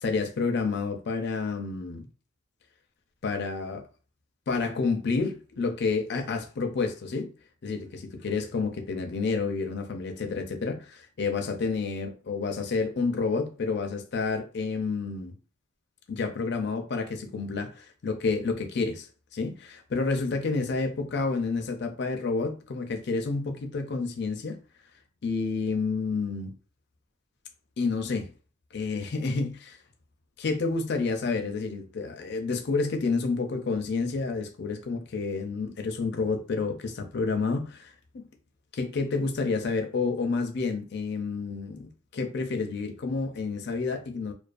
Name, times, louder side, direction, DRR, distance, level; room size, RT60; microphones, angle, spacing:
voice 1, 0.0-2.1 3.2-3.9 4.5-7.3 7.6-15.3 16.1-24.6 25.2-26.5 27.8-28.3 28.7-29.8 30.4-38.3 38.7-44.3, left 4 dB, 55° left, 0.4 m, -29 dB
2.3 x 2.2 x 2.4 m
head